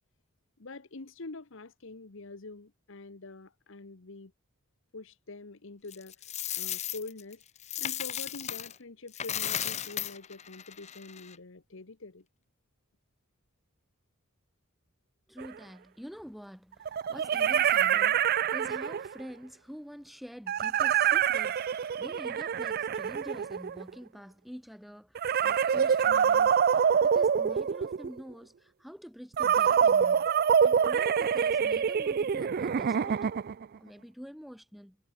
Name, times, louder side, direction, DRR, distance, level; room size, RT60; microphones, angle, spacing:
voice 1, 0.6-4.3 4.9-6.1 6.6-7.4 7.8-12.3, left 3 dB, 60° left, 1.1 m, -45 dB
Coin (dropping), 5.9-8.8 9.1-11.4, left 10 dB, 30° left, 0.8 m, -35 dB
voice 2, 15.3-30.3 30.6-33.3 33.8-35.0, equal, ahead, 2.5 m, -47 dB
sound 1, 15.4-15.5 16.9-19.2 20.5-23.9 25.2-28.2 29.4-33.7, right 7 dB, 45° right, 0.3 m, -26 dB
head